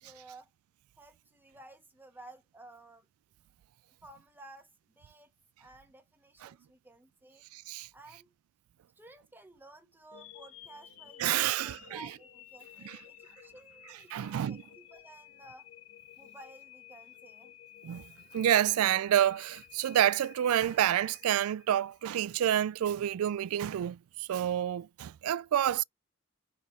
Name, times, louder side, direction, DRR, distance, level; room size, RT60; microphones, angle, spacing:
voice 1, 0.0-0.5 1.0-3.1 4.0-4.7 4.9-5.3 5.6-7.4 7.9-8.3 8.9-15.7 16.2-17.5, right 2 dB, 10° right, 1.3 m, -54 dB
voice 2, 7.5-7.9 11.2-12.0 12.8-13.0 14.1-14.6 17.8-18.0 18.3-25.8, right 11 dB, 80° right, 0.3 m, -28 dB
sound 1, 10.1-22.2, left 11 dB, 70° left, 1.3 m, -54 dB
5.3 x 4.4 x 4.5 m
head